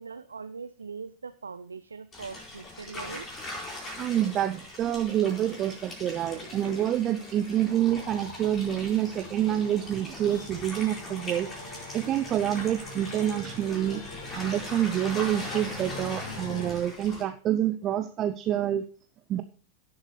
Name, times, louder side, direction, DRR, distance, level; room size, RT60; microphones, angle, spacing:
voice 1, 0.0-3.3, right 5 dB, 75° right, 13 dB, 0.4 m, -41 dB
bath FX, 2.1-17.2, left 1 dB, 20° left, 4.6 m, -41 dB
voice 2, 4.0-11.5 11.9-14.0 14.3-18.8 19.3-19.4, right 11 dB, 30° right, 10 dB, 0.6 m, -27 dB
sound 1, 5.1-16.7, left 2 dB, 55° left, 2.2 m, -44 dB
17.0 x 7.3 x 3.2 m, 0.40 s
figure-of-eight pair, 90°, 0 cm